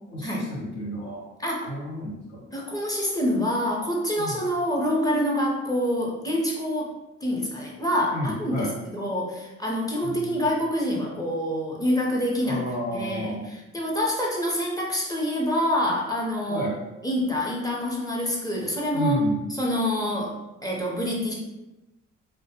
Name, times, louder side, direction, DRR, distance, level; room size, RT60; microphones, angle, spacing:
voice 1, 0.1-1.2 1.6-2.4 4.2-4.4 8.1-8.7 10.0-10.4 12.4-13.5 16.5-16.8 18.9-19.5, equal, 65° left, -5 dB, 0.8 m, -31 dB
voice 2, 2.5-6.9 7.2-12.6 12.9-16.7 17.0-21.3, equal, 10° left, -3 dB, 0.6 m, -26 dB
2.1 x 2.1 x 2.8 m, 0.99 s
cardioid pair, 90°, 30 cm